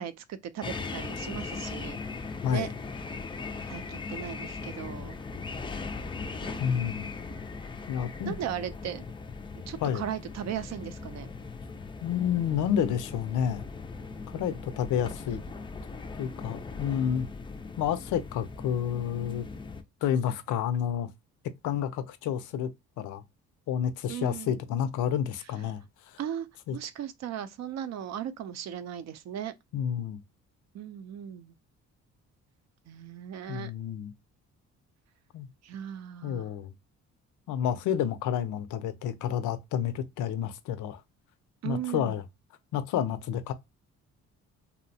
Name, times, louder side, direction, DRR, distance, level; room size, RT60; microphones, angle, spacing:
voice 1, 0.0-2.0 2.5-2.7 3.7-5.2 6.4-7.1 8.3-9.0 9.7-11.3 14.3-14.7 24.1-24.5 26.2-26.5 26.7-29.5 30.7-31.5 32.9-33.7 35.6-36.5 41.6-42.2, right 10 dB, 60° right, 0.5 m, -37 dB
sound 1, 0.6-19.8, left 4 dB, 15° left, 0.3 m, -39 dB
voice 2, 6.6-7.1 7.9-8.4 9.8-10.0 12.0-13.6 14.3-15.4 16.2-17.3 17.8-19.5 20.0-21.1 21.6-22.7 23.0-23.2 23.7-26.2 26.7-26.8 29.7-30.2 33.5-34.1 35.3-35.5 36.2-36.7 37.5-41.0 41.6-42.2 42.7-43.5, left 9 dB, 80° left, 0.5 m, -30 dB
2.7 x 2.0 x 2.7 m
cardioid pair, 90°, 30 cm